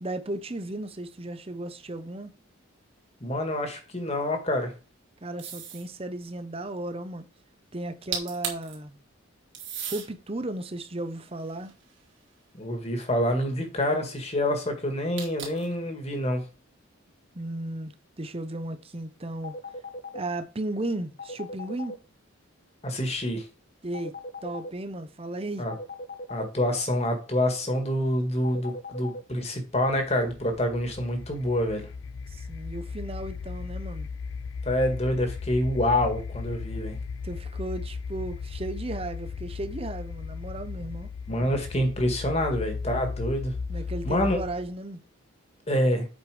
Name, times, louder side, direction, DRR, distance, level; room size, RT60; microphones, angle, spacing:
voice 1, 0.0-2.3 5.2-7.3 7.7-9.0 9.9-11.7 17.3-19.5 20.1-22.0 23.8-24.1 24.4-25.7 32.3-34.1 37.2-41.1 43.7-45.0, right 2 dB, 30° right, 0.8 m, -35 dB
voice 2, 3.2-4.7 12.6-16.4 22.8-23.5 25.6-25.7 26.3-31.9 34.6-37.0 41.3-43.5 44.0-44.4 45.7-46.1, left 1 dB, 30° left, 1.8 m, -27 dB
sound 1, 5.4-5.9 7.9-8.0 8.1-8.7 9.5-10.1 10.8-12.2 15.2-15.7, right 7 dB, 60° right, 2.6 m, -36 dB
sound 2, 19.4-20.2 21.2-21.9 23.9-24.7 25.7-26.4 28.4-29.2, left 2 dB, 50° left, 1.2 m, -38 dB
sound 3, 30.1-44.8, left 5 dB, 75° left, 0.5 m, -36 dB
8.0 x 5.1 x 5.0 m
head